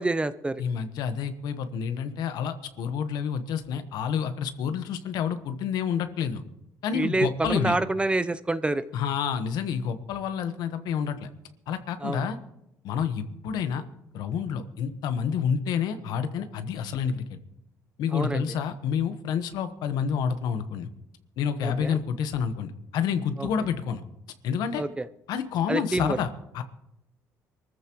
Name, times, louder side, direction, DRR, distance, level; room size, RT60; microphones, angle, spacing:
voice 1, 0.0-0.6 6.9-8.8 12.0-12.2 18.1-18.4 21.6-22.0 23.4-23.5 24.8-25.0 25.7-26.2, right 2 dB, 15° right, 13 dB, 0.6 m, -27 dB
voice 2, 0.6-6.4 6.8-7.8 8.9-11.3 11.7-12.4 12.8-13.8 14.1-17.2 18.0-20.9 21.4-24.0 24.4-24.8 25.3-26.6, left 7 dB, 75° left, 9 dB, 1.2 m, -29 dB
23.5 x 14.0 x 3.1 m, 0.85 s
supercardioid pair, 85°, 7 cm